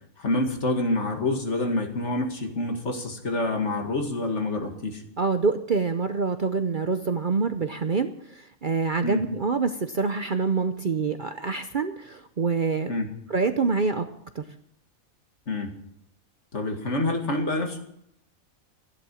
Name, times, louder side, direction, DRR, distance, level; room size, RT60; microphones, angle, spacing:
voice 1, 0.2-5.0 9.0-9.2 12.9-13.1 15.5-15.8 16.5-17.8, left 2 dB, 55° left, 4 dB, 2.4 m, -27 dB
voice 2, 5.2-12.9 13.3-14.1 14.3-14.5, right 4 dB, 45° right, 8 dB, 0.8 m, -26 dB
14.5 x 11.0 x 7.0 m, 0.72 s
omnidirectional pair, 1.4 m